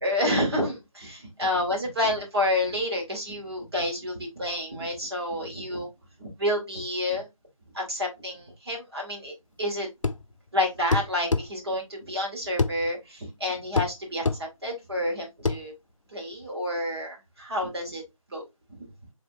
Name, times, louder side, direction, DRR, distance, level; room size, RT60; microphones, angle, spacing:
voice 1, 0.0-5.9 6.2-7.3 7.7-9.3 9.6-9.9 10.5-15.7 16.1-18.0 18.3-18.4, left 1 dB, 45° right, 2.2 m, -29 dB
sound 1, 10.0-10.3 10.9-11.5 12.6-12.8 13.8-13.9 14.3-14.4 15.5-15.6, left 4 dB, 60° left, 0.5 m, -24 dB
4.8 x 3.4 x 2.6 m
figure-of-eight pair, 165°, 18 cm